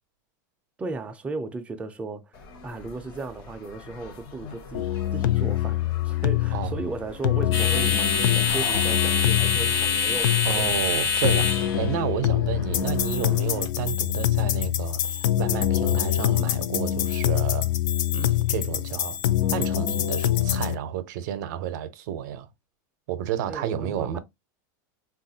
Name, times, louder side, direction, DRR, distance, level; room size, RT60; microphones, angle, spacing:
voice 1, 0.8-10.7 23.5-24.2, right 3 dB, 10° right, 0.4 m, -36 dB
sound 1, 2.4-13.7, left 5 dB, 40° left, 0.8 m, -28 dB
sound 2, 4.7-20.7, left 12 dB, 70° left, 0.4 m, -25 dB
sound 3, 8.5-9.8, left 5 dB, 90° left, 0.9 m, -40 dB
voice 2, 10.5-17.7 18.1-19.2 19.5-22.5 23.1-24.2, right 10 dB, 65° right, 0.5 m, -31 dB
3.4 x 2.4 x 2.6 m
supercardioid pair, 150°, 11 cm